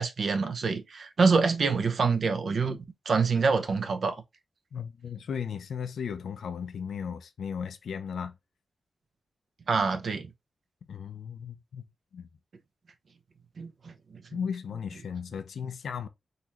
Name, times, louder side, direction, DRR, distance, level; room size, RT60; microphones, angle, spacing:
voice 1, 0.0-4.2 9.7-10.3 13.6-13.9, right 4 dB, 65° right, 0.6 m, -26 dB
voice 2, 4.7-8.4 10.9-11.8 12.1-12.3 14.3-16.1, left 7 dB, 90° left, 0.4 m, -36 dB
3.9 x 2.7 x 2.9 m
wide cardioid pair, 90°, 0 cm